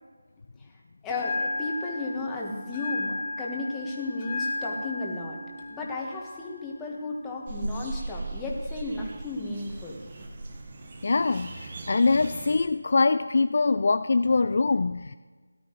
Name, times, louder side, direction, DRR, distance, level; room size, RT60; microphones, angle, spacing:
voice 1, 1.0-5.4 5.7-10.0, left 2 dB, 10° left, -3 dB, 1.5 m, -34 dB
Bell, 1.1-9.1, left 2 dB, 25° left, 1.3 m, -36 dB
sound 1, 7.5-12.7, right 2 dB, 35° right, 1.4 m, -38 dB
voice 2, 11.0-15.2, left 3 dB, 50° left, 12 dB, 0.3 m, -23 dB
17.5 x 11.5 x 3.2 m, 1.4 s
figure-of-eight pair, 160°, 0 cm